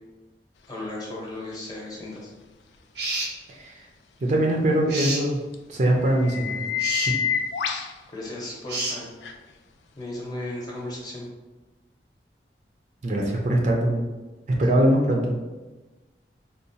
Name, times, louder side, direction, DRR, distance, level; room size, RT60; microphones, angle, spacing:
voice 1, 0.7-2.3 8.1-9.1 10.0-11.3, left 1 dB, 20° left, -4 dB, 0.7 m, -35 dB
sound 1, 1.5-1.6 5.5-5.6 6.0-7.9 9.2-9.3 10.9-11.0, left 8 dB, 80° left, 0.3 m, -28 dB
sound 2, 2.9-3.3 4.9-5.2 6.8-7.1 8.7-9.0, right 2 dB, 80° right, 0.8 m, -28 dB
voice 2, 4.2-5.4 5.7-6.6 7.1-7.2 13.0-14.1 14.6-15.3, right 1 dB, 45° right, 0 dB, 0.4 m, -22 dB
3.9 x 2.0 x 2.7 m, 1.2 s
head